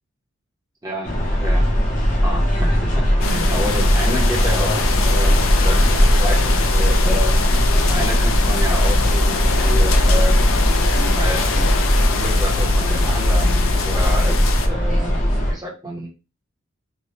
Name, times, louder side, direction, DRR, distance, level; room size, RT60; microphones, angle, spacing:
voice 1, 0.8-1.7 2.2-5.8 6.2-7.4 7.7-10.5 11.2-11.7 12.1-15.2 15.5-16.1, equal, 15° right, -3 dB, 0.9 m, -29 dB
sound 1, 1.0-15.5, equal, 35° left, 0.8 m, -18 dB
sound 2, 3.2-14.7, left 5 dB, 70° left, 0.5 m, -25 dB
sound 3, 4.3-14.3, left 3 dB, 55° right, 1.2 m, -26 dB
3.2 x 2.3 x 2.8 m, 0.30 s
head